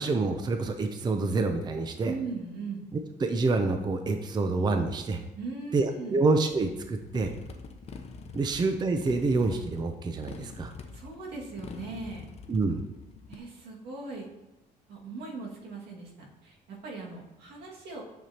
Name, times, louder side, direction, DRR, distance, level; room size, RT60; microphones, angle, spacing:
voice 1, 0.0-2.1 2.9-5.2 5.7-7.3 8.3-10.7 12.5-12.9, right 3 dB, 25° right, 6 dB, 0.5 m, -27 dB
voice 2, 2.0-2.8 5.4-6.2 8.4-8.6 10.9-12.3 13.3-14.3 14.9-18.0, right 3 dB, 75° right, -2 dB, 2.0 m, -39 dB
Motorcycle, 6.5-13.4, left 5 dB, 40° left, 0.8 m, -45 dB
9.2 x 6.8 x 2.9 m, 1.0 s
cardioid pair, 110°, 17 cm